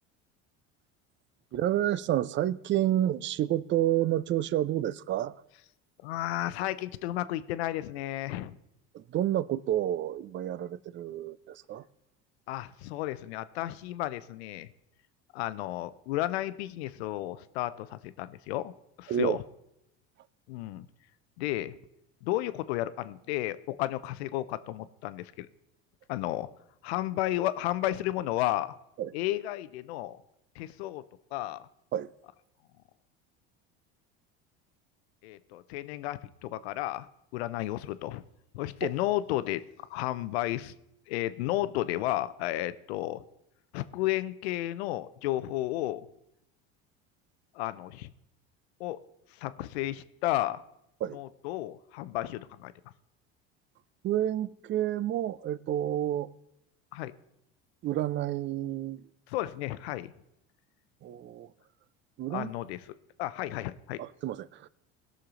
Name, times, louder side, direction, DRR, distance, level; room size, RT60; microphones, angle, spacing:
voice 1, 1.5-5.4 8.9-11.8 19.1-19.4 29.0-29.1 31.9-32.1 38.8-38.9 51.0-51.2 54.0-56.3 57.8-59.0 61.0-61.5 62.2-62.5 64.0-64.7, right 12 dB, 40° right, 0.5 m, -29 dB
voice 2, 6.0-8.6 12.5-14.7 15.3-19.4 20.5-20.9 21.4-21.8 22.2-25.5 26.1-26.5 26.8-28.8 29.1-30.2 30.6-31.0 31.3-31.7 35.2-37.1 37.3-38.2 38.5-40.7 41.1-43.2 43.7-46.0 47.5-48.1 48.8-49.0 49.4-50.6 51.1-52.7 56.9-57.1 59.3-60.1 62.3-62.8 63.2-64.0, left 15 dB, 85° left, 0.6 m, -33 dB
17.5 x 6.6 x 3.7 m
supercardioid pair, 90°, 31 cm